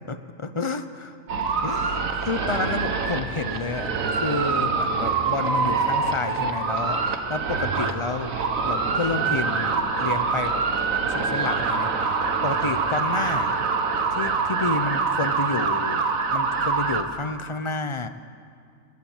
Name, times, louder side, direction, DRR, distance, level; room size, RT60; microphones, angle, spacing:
voice 1, 0.1-1.2 1.6-8.4 8.6-10.6 11.1-11.9 12.4-13.7 14.1-18.1, left 3 dB, 30° left, 10 dB, 0.7 m, -30 dB
sound 1, 1.3-17.0, right 4 dB, 80° right, 1.7 m, -25 dB
30.0 x 12.0 x 7.3 m, 2.2 s
omnidirectional pair, 1.4 m